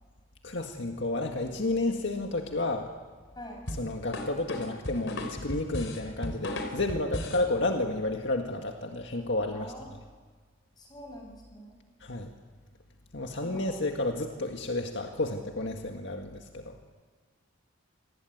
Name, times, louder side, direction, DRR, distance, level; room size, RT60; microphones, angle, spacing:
voice 1, 0.4-2.9 3.8-9.7 12.0-12.3 13.1-16.8, left 2 dB, 65° left, 3 dB, 1.9 m, -31 dB
sound 1, 3.7-7.5, left 1 dB, 80° left, 4.3 m, -35 dB
voice 2, 9.5-9.9 10.8-11.8 13.4-13.8, left 1 dB, 20° left, 2 dB, 6.9 m, -45 dB
28.0 x 20.0 x 9.5 m, 1.5 s
head